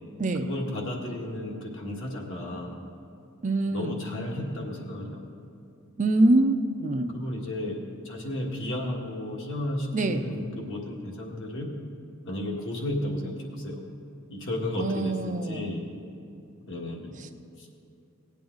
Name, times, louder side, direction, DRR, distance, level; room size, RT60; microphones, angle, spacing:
voice 1, 0.4-2.8 3.7-5.2 7.1-7.8 8.1-11.7 12.2-13.8 14.3-15.8 16.7-17.2 17.6-17.7, left 1 dB, 60° left, -1 dB, 1.8 m, -33 dB
voice 2, 3.4-4.0 6.0-7.2 9.9-10.2 14.8-15.7, right 2 dB, 35° right, 6 dB, 0.5 m, -24 dB
18.0 x 8.6 x 3.9 m, 2.7 s
head